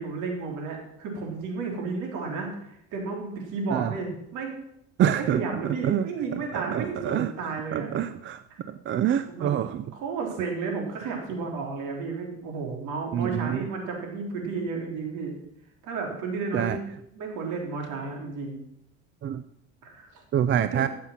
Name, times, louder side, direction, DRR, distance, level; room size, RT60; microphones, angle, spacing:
voice 1, 0.0-4.6 5.1-8.0 8.5-8.6 9.3-9.5 9.9-15.3 15.8-18.6 19.8-20.2 20.7-20.8, right 4 dB, 70° right, 1 dB, 3.8 m, -32 dB
voice 2, 5.0-5.4 5.8-6.0 6.5-7.3 7.7-9.8 13.1-13.6 16.5-16.8 19.2-19.4 20.3-20.9, right 10 dB, 35° right, 12 dB, 0.5 m, -26 dB
13.0 x 7.6 x 5.8 m, 0.77 s
cardioid pair, 115°, 32 cm